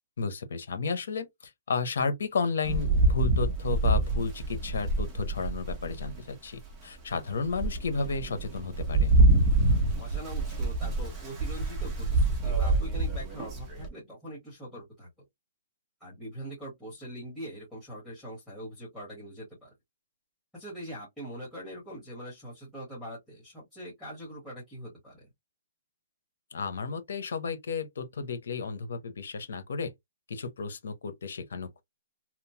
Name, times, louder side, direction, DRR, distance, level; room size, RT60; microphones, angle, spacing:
voice 1, 0.2-9.1 26.5-29.9 30.3-31.8, left 4 dB, 80° left, 0.8 m, -33 dB
Rain, 2.6-6.2 6.7-6.8 7.3-13.9, right 2 dB, 15° right, 0.8 m, -26 dB
voice 2, 10.0-15.1 16.0-19.7 20.5-25.3, equal, 5° left, 1.3 m, -43 dB
3.0 x 2.0 x 2.7 m
hypercardioid pair, 165°, 0 cm